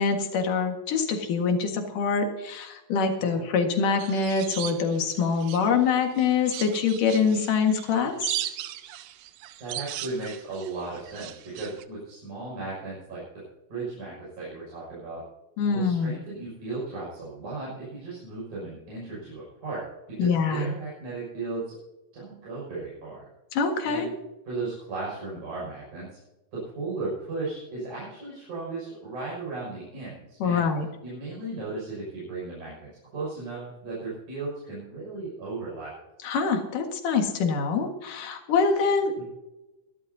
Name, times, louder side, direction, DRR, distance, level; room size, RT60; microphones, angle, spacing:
voice 1, 0.0-8.3 15.6-16.2 20.2-20.7 23.5-24.1 30.4-30.9 36.2-39.1, left 5 dB, 70° left, 3 dB, 3.3 m, -25 dB
sound 1, 4.0-5.8 6.2-11.8, right 13 dB, 85° right, 2.4 m, -37 dB
voice 2, 9.6-13.4 13.7-15.2 15.7-21.8 22.1-23.3 23.8-24.1 24.5-26.2 26.5-30.6 31.0-35.9 39.2-39.3, right 3 dB, 60° right, -8 dB, 7.9 m, -36 dB
24.0 x 12.5 x 2.8 m, 1.0 s
omnidirectional pair, 4.0 m